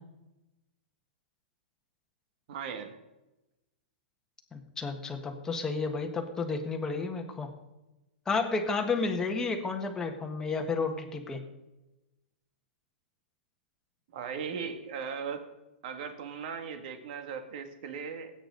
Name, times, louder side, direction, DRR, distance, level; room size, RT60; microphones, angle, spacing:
voice 1, 2.5-2.9 14.1-15.4 15.8-18.3, right 6 dB, 55° right, 6 dB, 2.1 m, -38 dB
voice 2, 4.5-7.5 8.2-11.4, left 4 dB, 10° left, 3 dB, 1.4 m, -31 dB
19.0 x 9.1 x 3.9 m, 0.98 s
hypercardioid pair, 155°, 6 cm